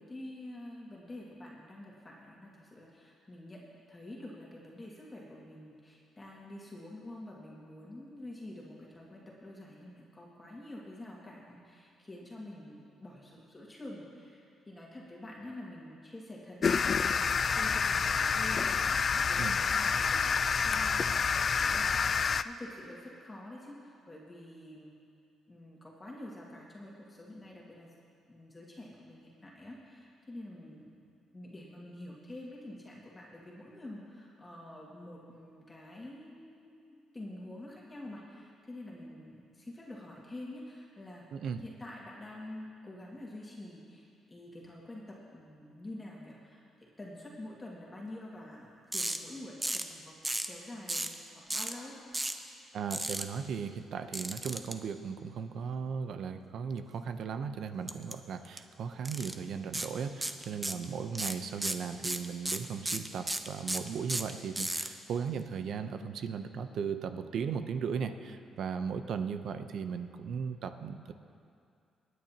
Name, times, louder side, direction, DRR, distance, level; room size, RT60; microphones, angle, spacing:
voice 1, 0.0-18.7 19.0-21.9 22.4-24.9 25.5-27.9 28.3-31.0 31.3-41.3 41.6-50.1 50.5-51.9 60.2-60.5, left 1 dB, 20° left, -4 dB, 2.1 m, -47 dB
sound 1, 16.6-22.4, left 6 dB, 45° left, 0.3 m, -28 dB
voice 2, 41.3-41.6 52.7-71.1, right 6 dB, 70° right, 9 dB, 0.7 m, -37 dB
sound 2, 48.9-49.2 49.6-49.9 50.2-50.5 50.9-51.2 51.5-51.7 52.1-52.4 52.9-53.2 54.1-54.7 57.9-58.1 58.4-58.6 59.0-59.3 59.7-59.9 60.2-60.8 61.1-64.9, right 2 dB, 15° right, 0.7 m, -33 dB
24.5 x 9.5 x 2.9 m, 2.4 s
cardioid pair, 90°, 0 cm